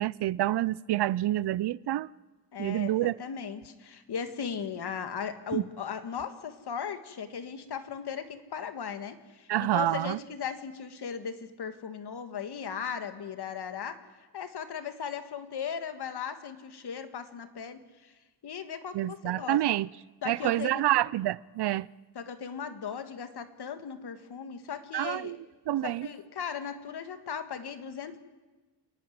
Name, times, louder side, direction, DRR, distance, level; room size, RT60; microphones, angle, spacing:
voice 1, 0.0-2.1 2.6-3.1 5.5-5.6 9.5-10.2 18.9-19.9 20.3-21.9 24.9-25.4 25.7-26.1, right 14 dB, 70° right, 0.6 m, -28 dB
voice 2, 2.5-14.0 14.3-18.1 18.4-19.6 20.2-20.9 22.1-25.4 25.8-28.2, left 7 dB, 65° left, 1.8 m, -37 dB
28.5 x 11.0 x 9.5 m
cardioid pair, 80°, 42 cm